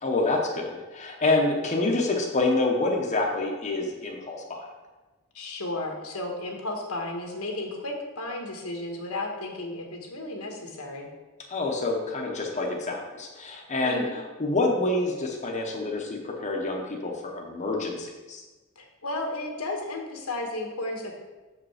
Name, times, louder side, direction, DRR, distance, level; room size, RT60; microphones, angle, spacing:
voice 1, 0.0-4.6 11.5-18.4, left 2 dB, 35° left, 0 dB, 0.9 m, -27 dB
voice 2, 5.3-11.1 13.8-14.2 18.8-21.1, left 2 dB, 85° left, 1 dB, 1.4 m, -33 dB
6.8 x 5.0 x 4.9 m, 1.2 s
head